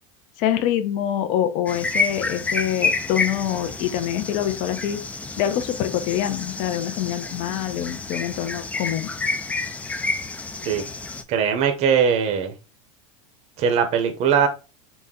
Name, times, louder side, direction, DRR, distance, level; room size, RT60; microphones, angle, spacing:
voice 1, 0.4-5.0 5.4-9.1, left 11 dB, 50° left, 0.6 m, -25 dB
sound 1, 1.7-11.2, left 3 dB, 10° left, 0.3 m, -29 dB
voice 2, 11.3-12.5 13.6-14.5, right 7 dB, 40° right, 0.7 m, -20 dB
4.1 x 2.2 x 3.6 m
supercardioid pair, 125°, 16 cm